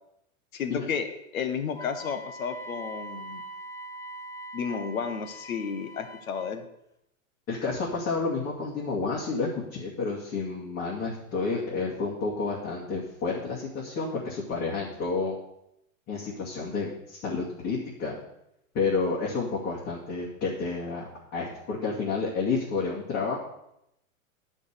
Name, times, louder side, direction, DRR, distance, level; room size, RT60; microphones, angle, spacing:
voice 1, 0.5-3.4 4.5-6.6, left 6 dB, 85° left, 8 dB, 1.5 m, -32 dB
Wind instrument woodwind instrument, 1.7-6.6, right 1 dB, 10° left, 1.0 m, -42 dB
voice 2, 7.5-15.3 16.1-18.2 18.7-21.0 21.3-23.4, left 4 dB, 35° left, -5 dB, 2.5 m, -30 dB
9.8 x 5.6 x 6.8 m, 0.81 s
hypercardioid pair, 125°, 41 cm